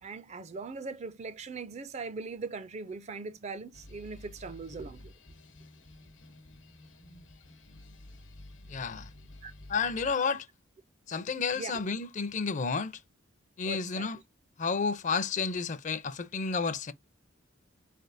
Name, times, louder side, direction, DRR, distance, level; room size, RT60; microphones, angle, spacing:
voice 1, 0.0-5.1 9.4-9.5 11.6-11.8 13.7-14.1, right 4 dB, 35° right, 0.4 m, -40 dB
sound 1, 3.7-10.1, left 1 dB, 75° left, 1.0 m, -51 dB
voice 2, 8.7-9.1 9.7-10.5 11.1-13.0 13.6-14.2 14.6-16.9, left 5 dB, 40° left, 0.5 m, -31 dB
4.2 x 3.3 x 2.6 m
head